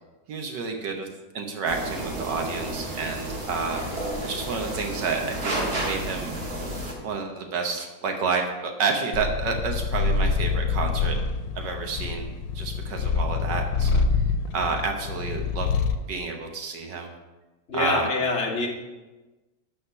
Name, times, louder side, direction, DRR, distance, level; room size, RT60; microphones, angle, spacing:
voice 1, 0.3-1.1 1.3-3.8 4.2-6.4 7.0-11.2 11.5-14.0 14.5-15.7 16.1-17.1 17.7-18.2, right 4 dB, 75° right, 3 dB, 1.6 m, -30 dB
sound 1, 1.7-6.9, right 1 dB, 55° right, 2.0 m, -31 dB
Purr, 9.1-16.1, left 4 dB, 90° left, 1.4 m, -26 dB
voice 2, 17.7-18.7, left 3 dB, 40° left, 0 dB, 1.5 m, -25 dB
12.0 x 4.3 x 5.5 m, 1.2 s
omnidirectional pair, 1.9 m